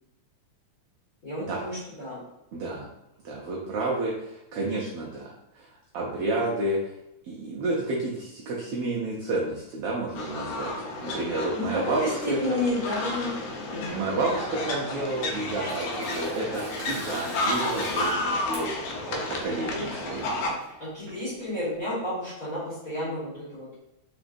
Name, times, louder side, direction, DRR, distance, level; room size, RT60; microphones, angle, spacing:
voice 1, 1.2-2.2 11.5-13.3 13.7-14.2 19.5-19.8 20.8-23.7, left 1 dB, 35° left, -9 dB, 1.7 m, -31 dB
voice 2, 2.5-2.9 3.2-6.9 7.3-12.6 13.8-18.8 19.1-20.2, right 2 dB, 85° right, -4 dB, 1.3 m, -30 dB
sound 1, 10.2-20.6, left 2 dB, 85° left, 2.1 m, -31 dB
Tearing, 15.0-21.8, right 1 dB, 40° right, 1.1 m, -43 dB
4.3 x 3.9 x 2.6 m, 0.90 s
omnidirectional pair, 3.4 m